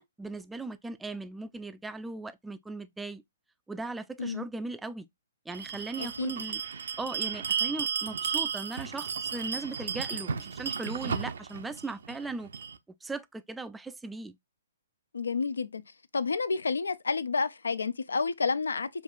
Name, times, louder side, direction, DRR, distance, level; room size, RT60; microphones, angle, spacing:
voice 1, 0.0-3.2 3.7-5.1 5.5-6.6 7.0-12.5 13.0-14.4, right 3 dB, 5° right, 0.3 m, -38 dB
Bell, 5.5-12.8, right 7 dB, 70° right, 0.5 m, -34 dB
voice 2, 6.0-6.3 15.1-15.8 16.1-18.9, left 4 dB, 85° left, 0.4 m, -30 dB
5.2 x 2.4 x 2.3 m
hypercardioid pair, 135°, 0 cm